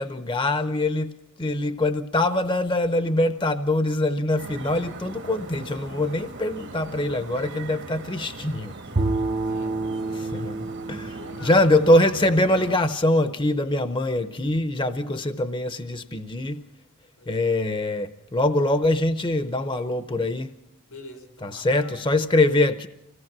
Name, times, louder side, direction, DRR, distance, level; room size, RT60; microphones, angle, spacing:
voice 1, 0.0-9.0 10.1-16.6 17.3-20.5 21.4-22.9, left 1 dB, 20° left, 0.7 m, -23 dB
sound 1, 4.4-12.8, right 3 dB, 55° right, 1.3 m, -40 dB
Bowed string instrument, 9.0-13.2, right 2 dB, 30° right, 0.7 m, -30 dB
voice 2, 9.3-10.3 11.1-11.8 17.2-17.6 20.9-21.9, left 2 dB, 90° left, 4.7 m, -45 dB
25.5 x 17.5 x 6.0 m
head